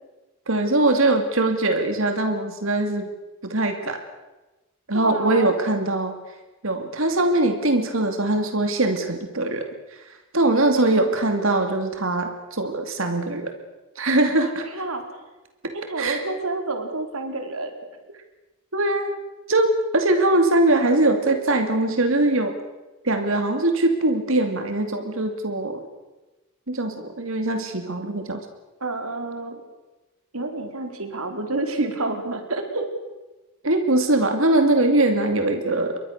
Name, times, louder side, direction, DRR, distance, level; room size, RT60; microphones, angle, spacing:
voice 1, 0.5-3.1 3.4-4.0 4.9-6.1 6.6-10.0 10.3-13.6 14.0-14.7 16.0-16.2 18.7-19.1 19.5-22.6 23.0-25.9 26.7-28.5 33.6-36.0, right 2 dB, 65° right, 6 dB, 2.6 m, -22 dB
voice 2, 4.9-5.5 10.8-11.1 14.4-15.0 15.7-17.7 28.8-29.6 30.3-32.9, right 2 dB, 80° right, 5 dB, 4.3 m, -29 dB
29.0 x 23.0 x 6.7 m, 1.1 s
head